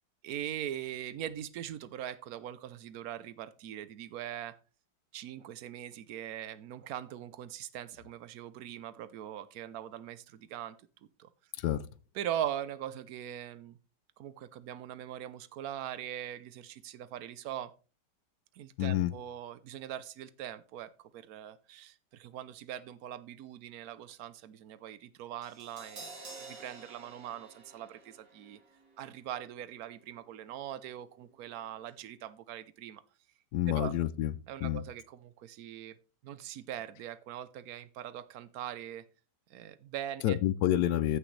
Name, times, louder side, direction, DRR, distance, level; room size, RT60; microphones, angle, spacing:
voice 1, 0.2-4.6 5.1-10.8 11.2-11.3 12.1-13.8 14.2-17.7 18.5-28.6 29.0-33.0 33.7-33.9 34.5-36.0 36.2-39.1 39.5-40.4, right 11 dB, 65° right, 1.1 m, -41 dB
voice 2, 18.8-19.1 33.5-34.3 34.6-34.8 40.2-41.2, left 12 dB, 75° left, 1.1 m, -28 dB
Crash cymbal, 25.4-31.6 31.8-32.0, right 3 dB, 90° right, 3.2 m, -52 dB
14.5 x 6.3 x 3.2 m
omnidirectional pair, 1.9 m